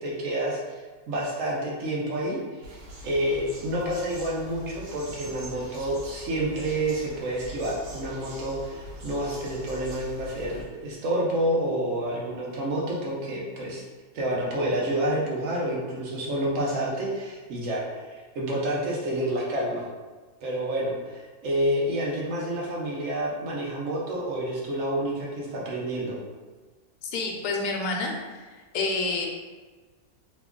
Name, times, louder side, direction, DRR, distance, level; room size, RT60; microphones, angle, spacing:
voice 1, 0.0-0.8 1.1-2.4 3.0-13.8 14.1-17.8 18.1-19.9 20.4-26.2, right 1 dB, 65° right, -3 dB, 1.0 m, -29 dB
sound 1, 2.6-10.6, equal, 90° right, 1.4 m, -43 dB
voice 2, 27.0-28.5 28.7-29.3, left 3 dB, 85° left, 1 dB, 1.1 m, -28 dB
3.0 x 2.3 x 3.6 m, 1.3 s
omnidirectional pair, 1.6 m